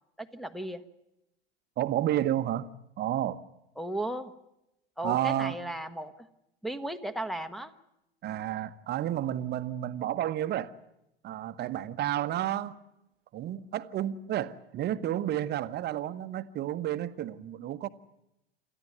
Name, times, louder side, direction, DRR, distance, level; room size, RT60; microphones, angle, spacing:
voice 1, 0.2-0.8 3.8-4.3 5.0-6.1 6.6-7.7, right 1 dB, ahead, 1.3 m, -35 dB
voice 2, 1.8-2.7 3.0-3.4 5.0-5.6 8.2-10.7 11.2-12.8 13.3-17.9, right 12 dB, 35° right, 1.1 m, -31 dB
28.0 x 14.0 x 9.5 m
hypercardioid pair, 90°, 30 cm